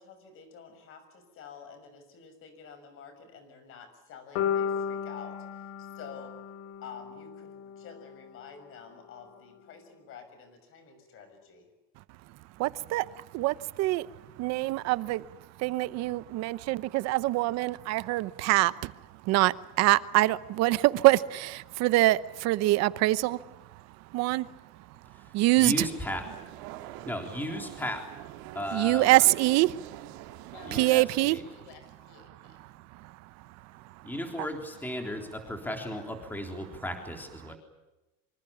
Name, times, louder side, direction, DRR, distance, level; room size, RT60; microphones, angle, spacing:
voice 1, 0.0-6.4 6.8-11.7, left 6 dB, 40° left, 6.5 m, -49 dB
sound 1, 4.4-8.5, left 8 dB, 65° left, 3.0 m, -34 dB
voice 2, 12.6-14.1 14.4-15.3 15.6-18.9 19.2-23.5 24.1-24.5 25.3-25.7 28.7-29.8 30.3-30.4 30.7-31.4 32.6-33.1, right 18 dB, 55° right, 0.9 m, -25 dB
voice 3, 25.1-26.3 27.0-28.1 28.5-29.3 30.7-31.4 34.0-37.6, left 1 dB, 5° left, 3.6 m, -35 dB
sound 2, 25.6-31.0, right 14 dB, 90° right, 2.5 m, -44 dB
voice 4, 30.5-32.6, left 7 dB, 85° left, 7.7 m, -52 dB
25.5 x 25.5 x 7.2 m
cardioid pair, 165°, 32 cm